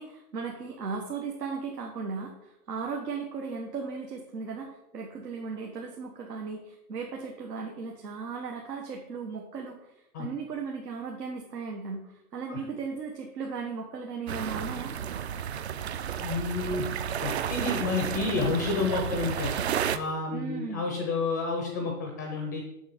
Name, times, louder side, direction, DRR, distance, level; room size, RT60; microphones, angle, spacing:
voice 1, 0.0-9.9 10.2-15.0 20.3-20.9, right 5 dB, 85° right, 1 dB, 1.5 m, -36 dB
sound 1, 14.3-20.0, right 8 dB, 45° right, 0.5 m, -32 dB
voice 2, 16.2-16.9 17.2-19.5 19.9-22.6, left 3 dB, 15° left, 2 dB, 0.4 m, -30 dB
7.1 x 6.4 x 5.1 m, 0.86 s
hypercardioid pair, 150°, 47 cm